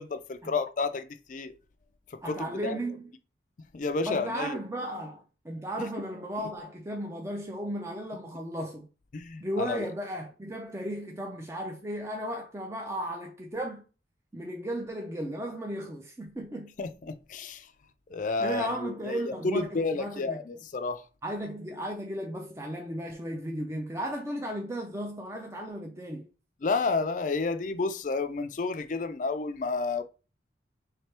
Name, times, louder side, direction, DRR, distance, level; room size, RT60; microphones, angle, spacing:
voice 1, 0.0-1.5 2.2-2.8 3.7-4.9 5.8-5.9 9.1-9.9 16.8-17.7 18.1-21.0 26.6-30.0, left 3 dB, 45° left, 0.4 m, -31 dB
voice 2, 2.2-3.0 4.0-8.9 9.4-13.8 14.3-16.7 18.4-20.4 21.2-26.3, equal, 15° right, 0.4 m, -35 dB
3.3 x 3.3 x 4.3 m
head